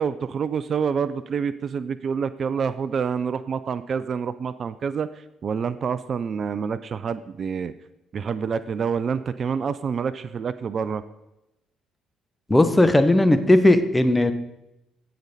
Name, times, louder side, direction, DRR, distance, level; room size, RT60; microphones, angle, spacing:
voice 1, 0.0-7.7 8.1-11.0, right 6 dB, 50° right, 14 dB, 0.4 m, -27 dB
voice 2, 12.5-14.3, left 1 dB, 15° left, 10 dB, 0.9 m, -17 dB
15.5 x 5.2 x 4.2 m, 0.91 s
hypercardioid pair, 55°, 0 cm